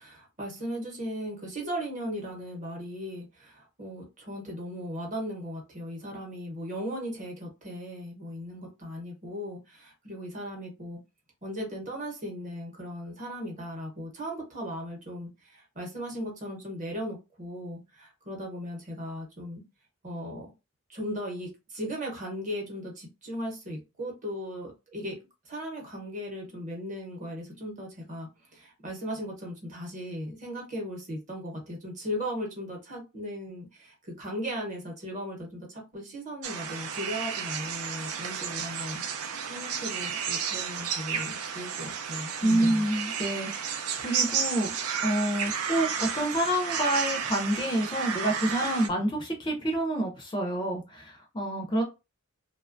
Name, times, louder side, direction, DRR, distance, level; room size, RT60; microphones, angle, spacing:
voice 1, 0.0-11.0 11.4-19.6 20.0-20.5 20.9-25.2 25.4-42.9, equal, 35° right, 0 dB, 0.8 m, -37 dB
sound 1, 36.4-48.9, right 7 dB, 85° right, 0.4 m, -32 dB
voice 2, 42.4-44.7 45.0-51.8, right 1 dB, 20° left, 2 dB, 0.4 m, -28 dB
2.8 x 2.2 x 2.5 m, 0.27 s
head